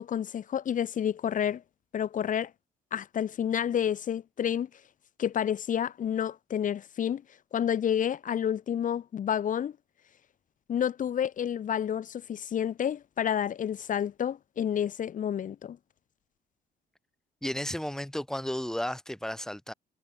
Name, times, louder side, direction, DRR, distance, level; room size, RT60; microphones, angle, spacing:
voice 1, 0.0-1.6 1.9-2.5 2.9-4.7 5.2-7.2 7.5-9.7 10.7-15.8, left 9 dB, 50° left, 6.7 m, -29 dB
voice 2, 17.4-19.7, left 1 dB, 5° left, 7.6 m, -33 dB
cardioid pair, 110°, 17 cm